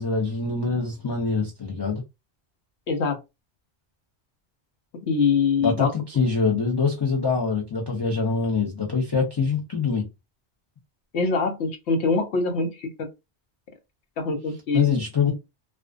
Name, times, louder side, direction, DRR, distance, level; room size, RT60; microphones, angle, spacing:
voice 1, 0.0-2.0 5.6-10.1 14.7-15.3, left 5 dB, 35° left, 0.4 m, -24 dB
voice 2, 2.9-3.2 5.0-5.9 11.1-13.1 14.2-15.0, left 4 dB, 80° left, 0.9 m, -24 dB
2.3 x 2.3 x 2.3 m
omnidirectional pair, 1.1 m